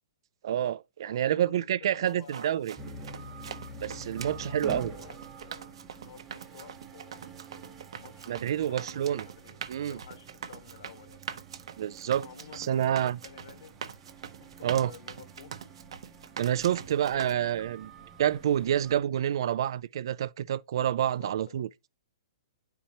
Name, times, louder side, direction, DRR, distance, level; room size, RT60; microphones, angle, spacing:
voice 1, 0.4-2.8 3.8-4.9 8.3-9.3 9.7-10.0 11.8-12.2 12.6-13.2 14.6-14.9 16.4-17.9 18.2-21.7, right 10 dB, 55° right, 0.3 m, -28 dB
voice 2, 1.0-2.7 3.9-7.2 8.0-11.2 12.2-13.8 14.4-15.5 16.7-17.7 20.9-21.6, left 7 dB, 60° left, 1.5 m, -52 dB
sound 1, 2.1-17.3, right 7 dB, 70° right, 0.8 m, -44 dB
sound 2, 2.8-19.0, right 2 dB, 10° right, 0.8 m, -47 dB
10.0 x 4.5 x 2.8 m
hypercardioid pair, 170°, 3 cm